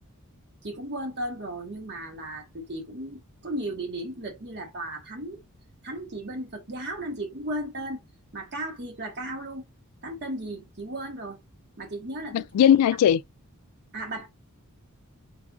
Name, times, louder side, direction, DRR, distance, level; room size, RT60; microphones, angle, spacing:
voice 1, 0.6-5.4 5.8-8.0 8.3-9.7 10.0-11.4 11.8-12.4 13.9-14.3, right 1 dB, 50° right, 1.4 m, -35 dB
voice 2, 12.3-13.2, left 9 dB, 85° left, 0.3 m, -19 dB
3.4 x 2.5 x 3.5 m
head